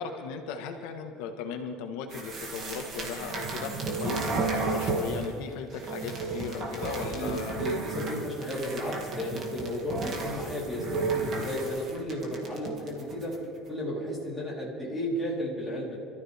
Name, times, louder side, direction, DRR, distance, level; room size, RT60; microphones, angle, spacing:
voice 1, 0.0-3.7 4.0-7.8, left 6 dB, 75° left, 4 dB, 1.5 m, -37 dB
sound 1, 2.1-5.4 5.7-13.4, right 3 dB, 35° right, 2.3 m, -33 dB
voice 2, 7.1-13.3 13.7-16.0, equal, ahead, -5 dB, 4.0 m, -33 dB
27.5 x 14.0 x 3.6 m, 2.6 s
cardioid pair, 175°, 0 cm